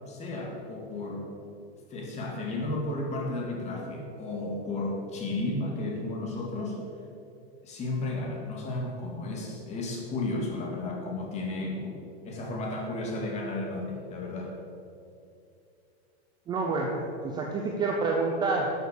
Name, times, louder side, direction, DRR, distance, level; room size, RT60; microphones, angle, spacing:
voice 1, 0.1-1.2 1.9-6.8 7.6-14.5, left 2 dB, 20° left, 0 dB, 2.1 m, -33 dB
voice 2, 16.5-18.7, right 3 dB, 15° right, 0 dB, 0.7 m, -28 dB
13.0 x 6.8 x 8.4 m, 2.6 s
supercardioid pair, 170°, 33 cm